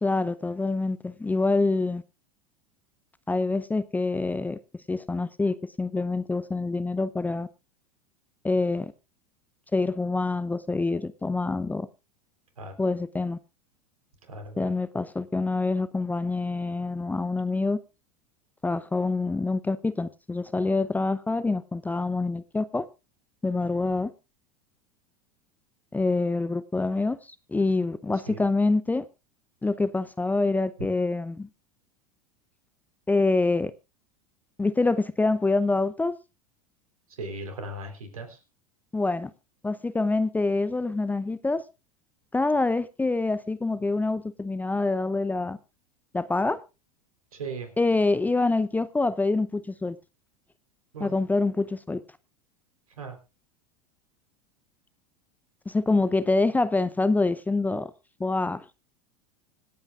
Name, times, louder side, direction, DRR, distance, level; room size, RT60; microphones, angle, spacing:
voice 1, 0.0-2.0 3.3-4.6 4.9-7.5 8.4-8.9 9.7-11.9 12.8-13.4 14.6-17.8 18.6-22.9 23.4-24.1 25.9-27.2 27.5-29.1 29.6-31.5 33.1-33.7 34.6-36.1 38.9-39.3 39.6-41.6 42.3-45.6 46.1-46.6 47.8-50.0 51.0-52.0 55.7-57.9 58.2-58.6, left 3 dB, 10° left, 0.6 m, -26 dB
voice 2, 14.3-14.7 23.5-24.0 28.3-28.4 37.2-38.4 47.3-47.7 50.9-51.1 53.0-53.2, right 2 dB, 75° right, 3.8 m, -38 dB
25.5 x 8.9 x 2.4 m
figure-of-eight pair, 85°, 18 cm